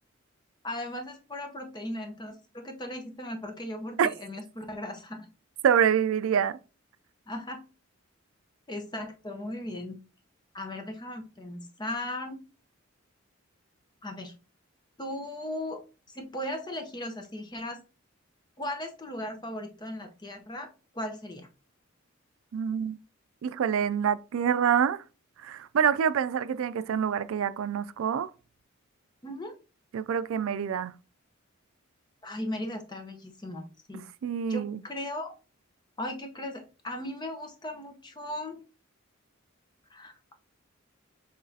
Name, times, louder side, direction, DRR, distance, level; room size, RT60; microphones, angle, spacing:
voice 1, 0.6-5.3 7.3-7.6 8.7-10.0 10.5-12.4 14.0-14.3 15.0-15.8 16.1-17.8 18.6-21.5 29.2-29.6 32.2-34.0 34.5-35.3 36.0-38.6 39.9-40.3, left 1 dB, 20° left, 0.8 m, -37 dB
voice 2, 5.6-6.6 22.5-23.0 23.4-25.0 25.4-28.3 29.9-30.9 34.2-34.8, right 8 dB, 75° right, 0.3 m, -26 dB
5.8 x 3.2 x 2.7 m
head